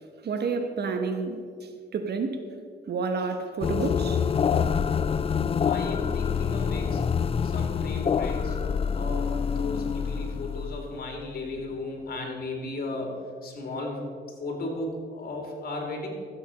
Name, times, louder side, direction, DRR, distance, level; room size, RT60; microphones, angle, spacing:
voice 1, 0.2-2.4 2.9-4.2, right 4 dB, 55° right, 7 dB, 1.2 m, -30 dB
sound 1, 3.6-11.5, left 6 dB, 30° left, 0.4 m, -26 dB
voice 2, 5.7-7.1 7.4-8.6 8.9-14.1 14.4-16.1, left 2 dB, 50° left, 1 dB, 3.3 m, -35 dB
13.5 x 8.3 x 5.6 m, 2.1 s
cardioid pair, 90°, 20 cm